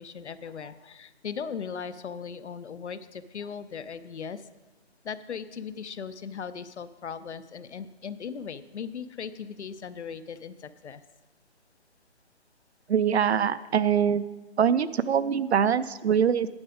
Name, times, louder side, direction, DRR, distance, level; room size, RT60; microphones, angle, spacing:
voice 1, 0.0-4.5 5.0-11.0, left 6 dB, 85° left, 14 dB, 0.7 m, -38 dB
voice 2, 12.9-16.5, right 8 dB, 70° right, 16 dB, 0.5 m, -24 dB
9.7 x 7.1 x 5.1 m, 1.1 s
hypercardioid pair, 170°, 33 cm